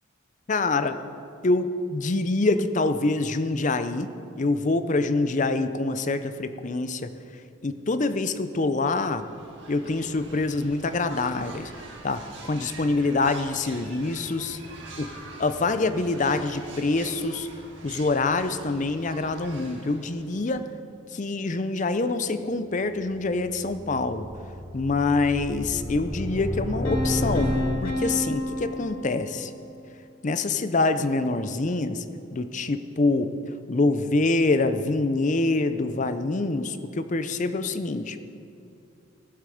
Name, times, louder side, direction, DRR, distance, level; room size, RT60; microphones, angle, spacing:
voice 1, 0.5-1.0 1.4-7.1 7.6-9.3 9.7-11.7 12.0-14.6 15.0-15.1 15.4-17.5 17.8-20.6 21.1-24.3 24.7-27.5 27.8-29.5 30.2-32.0 32.3-33.3 33.7-38.2, left 3 dB, 35° left, 11 dB, 0.5 m, -25 dB
sound 1, 9.1-20.7, right 2 dB, 55° right, 2.0 m, -45 dB
sound 2, 22.8-28.1, left 1 dB, 25° right, 3.6 m, -32 dB
Piano, 26.8-29.7, equal, 70° left, 3.0 m, -30 dB
18.0 x 8.1 x 5.0 m, 2.6 s
head